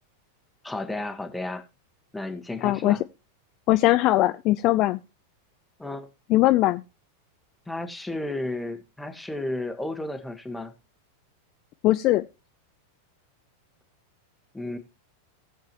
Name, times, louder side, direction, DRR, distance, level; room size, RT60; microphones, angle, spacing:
voice 1, 0.6-1.6 2.1-3.0 5.8-6.1 7.7-10.7 14.5-14.8, left 2 dB, 5° left, 1.6 m, -33 dB
voice 2, 2.6-3.0 3.7-5.0 6.3-6.8 11.8-12.2, left 16 dB, 40° left, 0.4 m, -20 dB
19.0 x 7.4 x 2.9 m
figure-of-eight pair, 90°, 0 cm